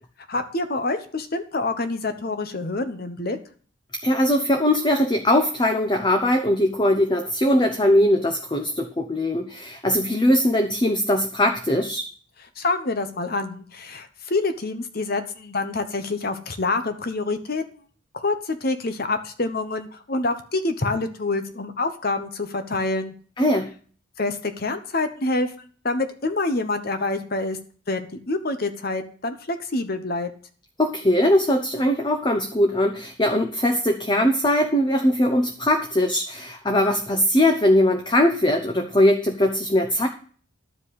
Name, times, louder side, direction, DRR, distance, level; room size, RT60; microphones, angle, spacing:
voice 1, 0.3-3.4 12.6-17.6 18.1-23.1 24.2-27.6 27.9-30.3, left 2 dB, 45° left, 9 dB, 1.0 m, -27 dB
voice 2, 4.0-12.0 23.4-23.7 30.8-40.1, left 1 dB, 20° left, 5 dB, 0.8 m, -20 dB
12.0 x 5.1 x 8.1 m, 0.43 s
head